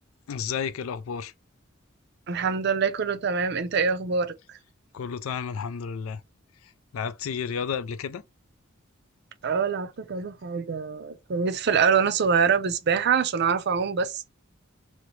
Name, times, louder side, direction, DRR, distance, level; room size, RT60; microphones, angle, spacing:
voice 1, 0.3-1.3 4.9-6.2 6.6-8.2, left 7 dB, 85° left, 0.4 m, -32 dB
voice 2, 2.3-4.3 9.4-14.3, right 6 dB, 55° right, 0.5 m, -25 dB
3.0 x 2.9 x 3.1 m
head